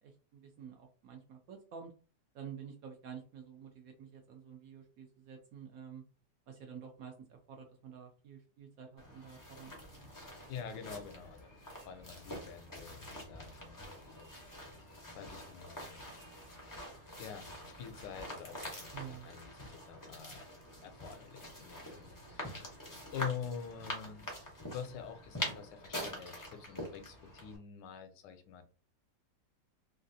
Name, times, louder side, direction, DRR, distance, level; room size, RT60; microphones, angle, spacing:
voice 1, 0.0-1.9 2.3-6.0 6.5-10.1 18.9-19.3, right 7 dB, 70° right, 2 dB, 0.9 m, -50 dB
sound 1, 9.0-27.6, left 1 dB, 30° left, 0.3 m, -46 dB
voice 2, 10.5-11.5 11.8-14.3 15.1-16.0 17.2-20.4 20.8-22.8 23.1-24.3 24.6-28.6, left 7 dB, 85° left, 8 dB, 1.2 m, -46 dB
3.1 x 2.4 x 2.6 m, 0.38 s
omnidirectional pair, 1.9 m